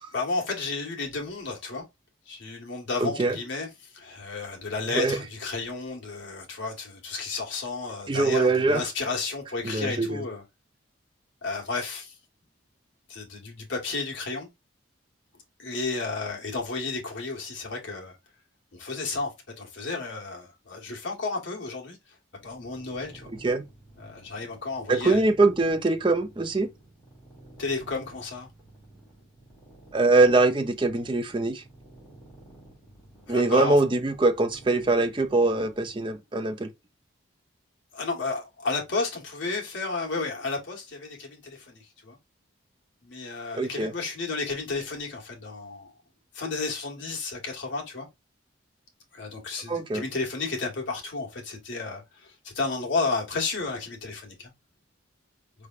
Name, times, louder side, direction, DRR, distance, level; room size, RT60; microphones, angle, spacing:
voice 1, 0.1-1.8 2.3-10.4 11.4-12.2 13.1-14.5 15.6-18.2 18.7-19.3 19.6-22.1 22.4-23.3 24.0-25.2 27.6-28.5 33.3-33.8 37.9-42.2 43.0-45.9 46.3-48.1 49.1-54.5, left 3 dB, 65° left, 1.4 m, -32 dB
voice 2, 3.0-3.4 4.9-5.2 8.1-8.8 9.6-10.2 23.4-23.6 24.9-26.7 29.9-31.6 33.3-36.7 43.5-43.9 49.7-50.0, right 3 dB, 25° right, 0.5 m, -23 dB
sound 1, 22.4-36.2, right 1 dB, 10° left, 2.5 m, -52 dB
4.5 x 3.3 x 2.4 m
head